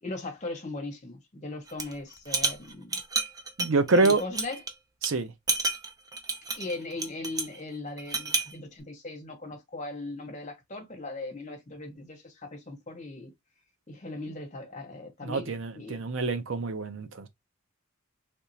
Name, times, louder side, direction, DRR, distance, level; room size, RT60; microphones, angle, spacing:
voice 1, 0.0-2.9 3.9-4.6 6.6-13.3 13.9-16.0, left 2 dB, 35° left, 1.2 m, -38 dB
sound 1, 1.7-1.9 2.3-4.7 5.0-5.1 5.5-7.6 8.0-8.5, right 3 dB, 20° right, 0.5 m, -30 dB
voice 2, 3.6-4.2 5.0-5.3 15.2-17.3, right 3 dB, 65° right, 0.6 m, -26 dB
3.4 x 2.8 x 2.7 m
head